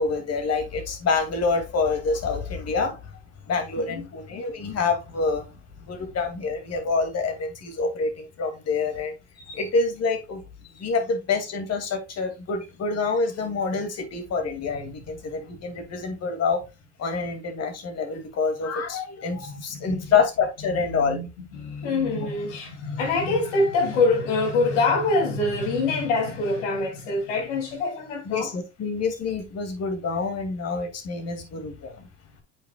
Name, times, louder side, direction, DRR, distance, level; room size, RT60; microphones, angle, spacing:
voice 1, 0.0-3.1 3.5-5.5 5.8-16.6 17.0-21.2 28.2-32.1, left 4 dB, 45° left, 2.5 m, -27 dB
voice 2, 19.5-20.1 20.7-28.5, left 3 dB, 80° left, 3.1 m, -25 dB
8.4 x 6.1 x 2.4 m
hypercardioid pair, 80°, 36 cm